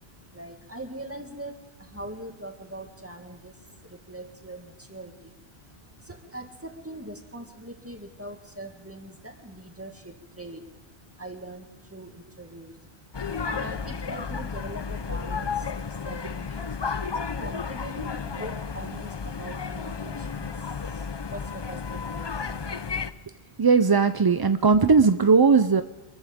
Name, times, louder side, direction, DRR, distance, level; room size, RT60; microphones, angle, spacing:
voice 1, 0.3-1.5 1.9-3.5 4.1-5.3 6.1-10.6 11.2-12.7 13.4-15.6 16.0-16.6 17.4-20.5 21.3-21.8 22.1-22.3, right 1 dB, 15° right, 2 dB, 2.1 m, -41 dB
sound 1, 13.1-23.1, left 5 dB, 35° left, 0.4 m, -32 dB
voice 2, 23.6-25.8, right 5 dB, 35° right, 9 dB, 0.3 m, -18 dB
26.0 x 14.5 x 3.6 m, 1.2 s
omnidirectional pair, 1.1 m